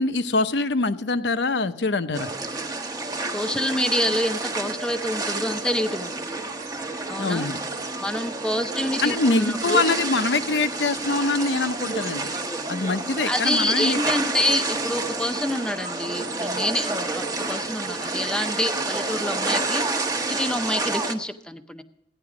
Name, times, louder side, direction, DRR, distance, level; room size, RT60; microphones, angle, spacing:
voice 1, 0.0-2.3 7.2-7.6 9.0-12.3 12.7-14.0, left 3 dB, 80° left, 10 dB, 0.8 m, -24 dB
sound 1, 2.1-21.1, right 3 dB, 20° right, 0.8 m, -29 dB
voice 2, 3.0-6.3 7.1-7.5 8.0-9.8 13.3-21.8, left 1 dB, 5° left, 7 dB, 0.6 m, -27 dB
15.0 x 10.5 x 4.9 m, 0.81 s
head